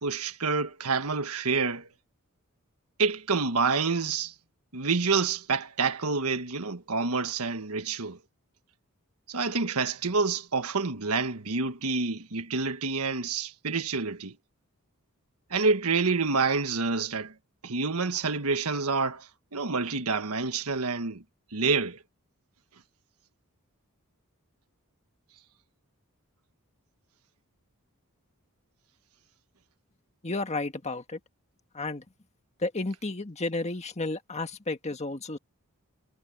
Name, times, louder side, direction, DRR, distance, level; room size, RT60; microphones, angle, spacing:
voice 1, 0.0-1.9 3.0-4.3 4.7-8.2 9.3-14.3 15.5-17.3 17.6-21.2 21.5-22.0, right 4 dB, 80° right, 1.5 m, -28 dB
voice 2, 30.2-31.2 31.7-32.0 32.6-35.4, left 2 dB, 30° left, 1.6 m, -32 dB
head